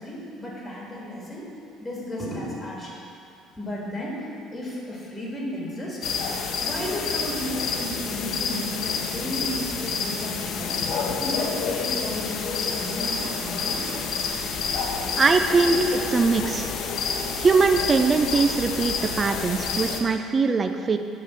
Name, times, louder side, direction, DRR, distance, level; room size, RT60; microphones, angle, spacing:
voice 1, 0.0-1.5 1.8-3.0 3.6-6.0 6.6-10.7 11.2-13.9 15.6-16.1 16.6-16.7, left 1 dB, 10° left, -5 dB, 1.9 m, -33 dB
sound 1, 6.0-20.0, left 5 dB, 55° left, 0.8 m, -28 dB
voice 2, 15.2-15.8 16.1-16.7 17.4-21.0, right 4 dB, 25° right, 7 dB, 0.3 m, -21 dB
9.9 x 3.7 x 7.1 m, 2.5 s
cardioid pair, 150°, 0 cm